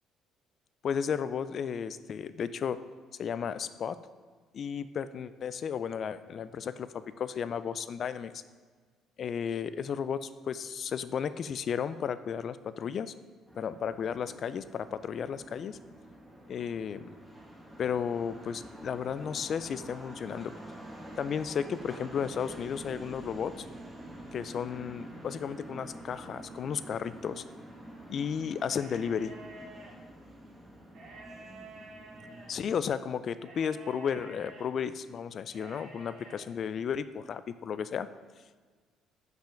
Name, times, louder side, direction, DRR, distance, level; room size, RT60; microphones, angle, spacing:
voice 1, 0.8-2.8 3.2-4.0 4.5-8.3 9.2-13.1 13.6-15.8 16.5-17.1 17.8-20.5 21.2-23.7 24.3-27.4 28.1-29.3 32.5-38.1, left 7 dB, 45° left, 14 dB, 0.3 m, -34 dB
sound 1, 13.5-32.9, right 1 dB, 5° right, 1.2 m, -47 dB
sound 2, 28.6-29.9 30.9-32.5 33.4-34.7 35.5-36.4, right 2 dB, 55° right, 1.5 m, -49 dB
5.7 x 5.6 x 5.1 m, 1.5 s
cardioid pair, 130°, 0 cm